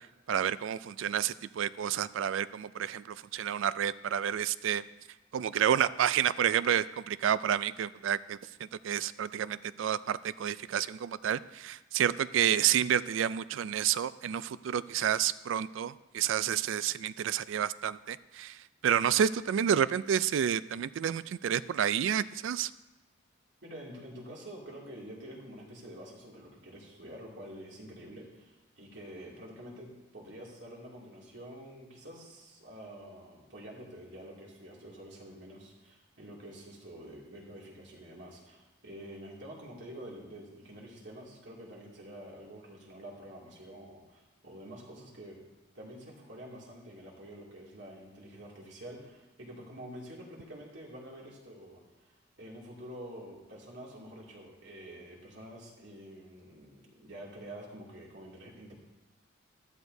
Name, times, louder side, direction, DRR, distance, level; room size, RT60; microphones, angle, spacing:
voice 1, 0.3-4.8 5.3-8.4 8.8-18.6 18.8-22.7, right 9 dB, 80° right, 16 dB, 0.3 m, -29 dB
voice 2, 23.6-45.4 45.7-58.7, equal, 65° right, -3 dB, 2.5 m, -47 dB
12.5 x 12.5 x 2.7 m, 1.1 s
head